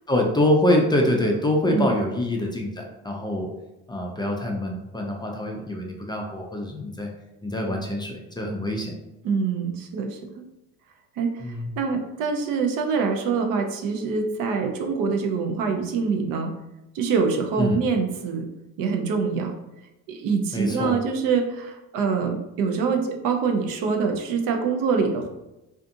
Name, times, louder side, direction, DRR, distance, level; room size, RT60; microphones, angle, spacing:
voice 1, 0.1-3.5 3.9-7.1 7.4-8.9 11.4-11.7 17.6-17.8 20.5-21.0, left 1 dB, 15° left, 0 dB, 0.4 m, -25 dB
voice 2, 9.2-10.2 11.2-16.5 16.9-18.5 18.8-19.5 20.1-25.3, right 5 dB, 65° right, 4 dB, 0.6 m, -25 dB
2.5 x 2.5 x 2.5 m, 0.95 s
supercardioid pair, 80°, 36 cm